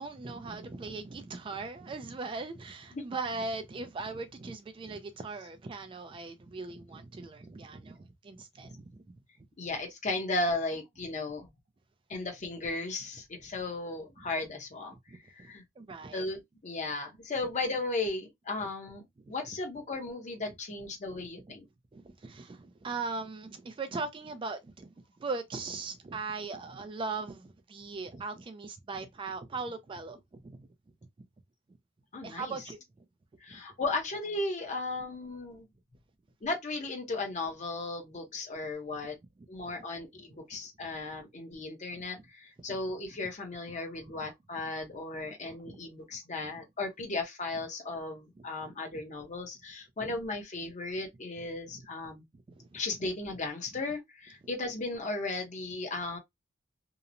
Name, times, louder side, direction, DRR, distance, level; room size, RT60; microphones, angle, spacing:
voice 1, 0.0-9.0 15.1-16.3 19.2-19.3 21.4-21.5 21.9-24.9 25.2-30.6 32.2-32.8 33.5-33.6 40.8-40.9 42.0-42.1 42.7-42.8 45.6-45.8 48.9-49.0 50.0-50.1 52.6-52.8, right 3 dB, 25° right, 0.3 m, -39 dB
voice 2, 9.6-11.5 12.1-15.0 15.3-15.6 16.1-21.6 32.1-32.5 33.4-35.7 36.4-39.1 39.5-52.2 52.7-56.2, left 2 dB, 40° left, 0.7 m, -36 dB
2.8 x 2.0 x 2.5 m
head